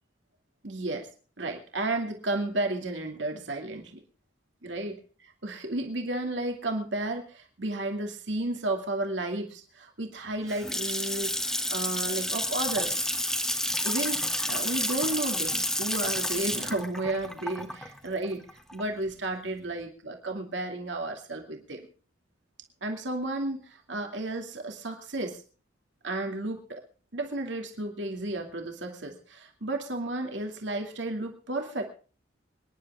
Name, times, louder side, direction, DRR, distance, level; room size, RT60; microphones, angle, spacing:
voice 1, 0.6-1.1 1.4-4.0 4.6-5.0 5.4-13.0 13.8-21.9 22.8-25.4 26.0-26.8 27.1-31.8, right 2 dB, 70° right, 3 dB, 2.5 m, -33 dB
Water tap faucet / Sink (filling or washing) / Splash splatter, 10.2-19.1, left 1 dB, 5° left, 1.4 m, -30 dB
25.0 x 10.5 x 3.6 m, 0.38 s
head